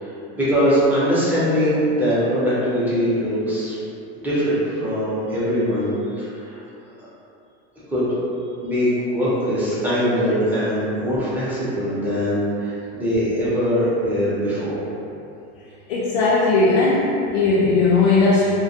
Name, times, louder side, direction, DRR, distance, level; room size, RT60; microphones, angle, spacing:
voice 1, 0.0-3.8 4.2-5.9 6.2-6.6 7.9-8.1 8.6-14.8, equal, 5° right, -11 dB, 0.5 m, -22 dB
voice 2, 15.9-18.5, left 3 dB, 80° left, -7 dB, 0.5 m, -18 dB
2.2 x 2.1 x 2.6 m, 2.7 s
supercardioid pair, 140°, 32 cm